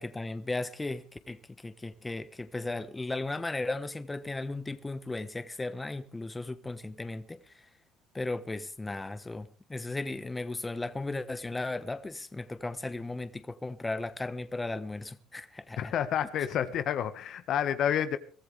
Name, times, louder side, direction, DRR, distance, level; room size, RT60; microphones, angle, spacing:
voice 1, 0.0-7.5 8.1-15.9, left 2 dB, 15° left, 1.2 m, -36 dB
voice 2, 15.8-18.2, left 9 dB, 60° left, 1.5 m, -29 dB
23.5 x 15.0 x 3.4 m
supercardioid pair, 80°, 0 cm